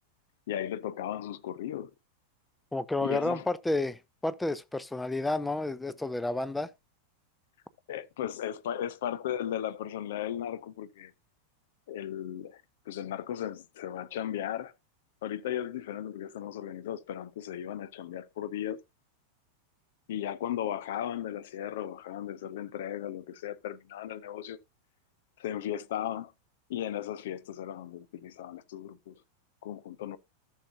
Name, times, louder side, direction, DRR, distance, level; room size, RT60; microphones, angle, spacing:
voice 1, 0.5-1.9 3.0-3.5 7.9-11.1 11.9-14.7 15.2-18.8 20.1-24.6 25.4-26.3 26.7-29.1 29.6-30.2, left 10 dB, 55° left, 0.7 m, -36 dB
voice 2, 2.7-6.7, left 2 dB, 5° left, 0.6 m, -31 dB
14.0 x 6.5 x 2.6 m
figure-of-eight pair, 90°, 0 cm